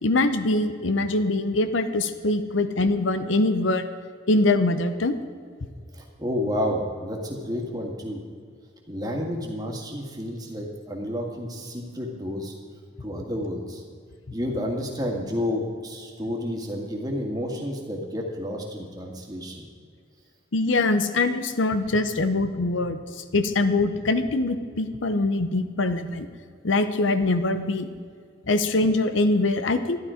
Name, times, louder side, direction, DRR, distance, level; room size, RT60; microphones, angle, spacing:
voice 1, 0.0-3.8 4.3-5.2 6.6-6.7 20.5-26.3 26.6-27.9 28.5-30.0, left 2 dB, 80° left, 10 dB, 0.8 m, -23 dB
voice 2, 5.9-8.2 8.9-12.5 13.0-13.8 14.3-19.7, left 1 dB, 20° right, 0 dB, 1.8 m, -30 dB
13.0 x 11.5 x 5.0 m, 2.1 s
head